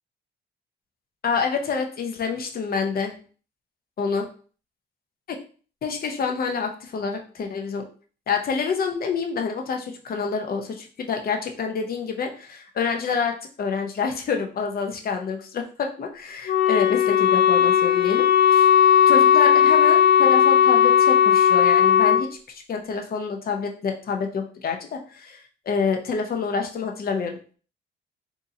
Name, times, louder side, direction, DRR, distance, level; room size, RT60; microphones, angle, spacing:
voice 1, 1.2-3.1 4.0-4.3 5.8-7.8 8.3-18.7 19.1-22.3 22.7-25.4 25.7-27.4, left 5 dB, 50° left, 4 dB, 0.8 m, -27 dB
Wind instrument woodwind instrument, 16.5-22.2, left 9 dB, 80° left, 0.5 m, -16 dB
3.7 x 2.8 x 2.7 m, 0.40 s
cardioid pair, 90°, 20 cm